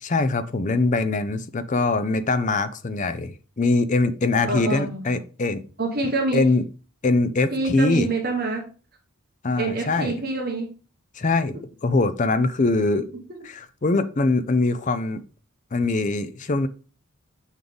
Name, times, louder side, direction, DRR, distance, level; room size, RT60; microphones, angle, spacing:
voice 1, 0.0-5.6 6.3-6.6 7.0-8.1 9.4-10.1 11.2-13.1 13.4-15.2 15.7-16.7, left 3 dB, 35° left, 0.5 m, -23 dB
voice 2, 4.5-5.2 5.8-6.5 7.5-8.7 9.6-10.7, right 3 dB, 45° right, 1.2 m, -26 dB
6.3 x 3.9 x 5.2 m
head